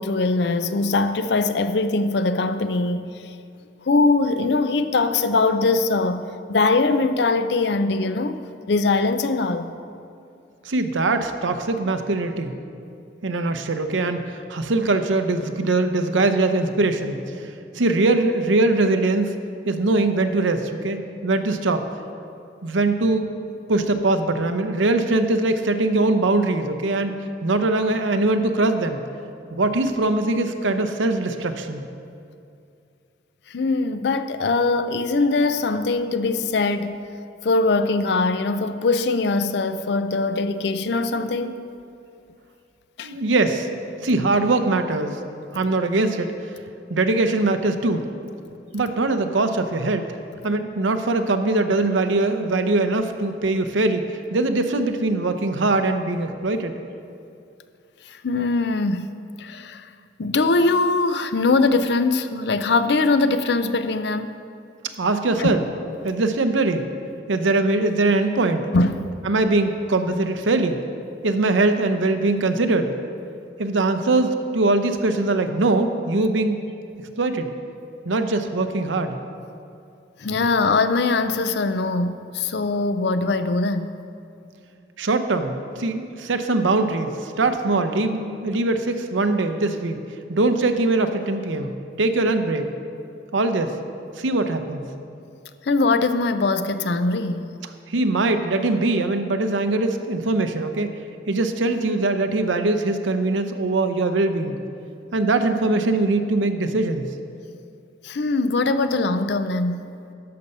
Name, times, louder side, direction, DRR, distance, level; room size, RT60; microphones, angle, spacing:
voice 1, 0.0-3.3 3.8-6.2 6.5-8.4 8.7-9.7 33.5-37.0 37.4-41.7 43.0-43.1 58.1-59.1 59.4-59.9 60.2-64.3 65.4-65.6 68.7-69.1 80.2-83.9 95.6-97.5 108.0-109.9, left 3 dB, 60° left, 11 dB, 0.5 m, -22 dB
voice 2, 10.6-12.5 13.2-17.2 17.7-19.3 19.7-21.8 22.6-23.3 23.7-27.1 27.4-29.0 29.5-31.9 43.0-43.7 44.0-45.2 45.5-46.3 46.9-48.1 48.7-50.1 50.4-54.0 54.3-56.8 65.0-65.6 66.0-66.9 67.3-68.7 69.3-70.8 71.2-72.9 73.6-76.6 77.2-77.5 78.0-79.2 85.0-90.0 90.3-92.7 93.3-93.8 94.2-94.9 97.9-100.9 101.3-104.6 105.1-107.0, right 2 dB, 90° right, 8 dB, 0.7 m, -22 dB
12.0 x 6.8 x 5.4 m, 2.5 s
head